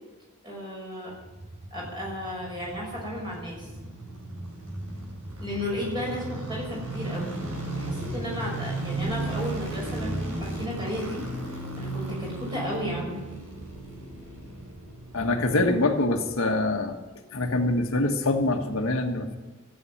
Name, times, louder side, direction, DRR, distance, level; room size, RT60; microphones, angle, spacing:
voice 1, 0.4-1.1 1.7-3.7 5.4-7.3 7.8-11.2 11.8-13.2, left 1 dB, 20° right, -3 dB, 6.3 m, -34 dB
sound 1, 1.1-16.3 16.6-16.7, right 2 dB, 70° right, 5.0 m, -35 dB
voice 2, 15.1-17.0 17.3-19.4, left 2 dB, 75° left, 4 dB, 1.5 m, -24 dB
14.5 x 8.8 x 9.7 m, 1.2 s
head